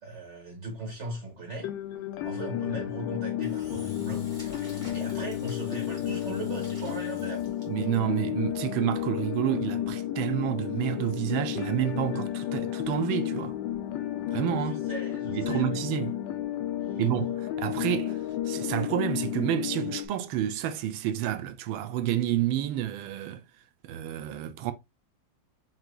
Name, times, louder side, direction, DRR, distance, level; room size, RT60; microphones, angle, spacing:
voice 1, 0.0-4.2 4.6-7.4 14.7-15.8 16.8-17.0, right 2 dB, 40° right, 1.9 m, -39 dB
sound 1, 1.6-20.1, left 12 dB, 75° left, 1.3 m, -32 dB
Engine / Drill, 3.4-8.0, left 6 dB, 15° right, 1.8 m, -42 dB
voice 2, 7.7-13.6 14.3-14.9 15.3-16.2 17.0-18.2 18.5-23.4 23.8-24.7, right 12 dB, 85° right, 1.4 m, -29 dB
5.8 x 3.2 x 2.2 m
omnidirectional pair, 2.1 m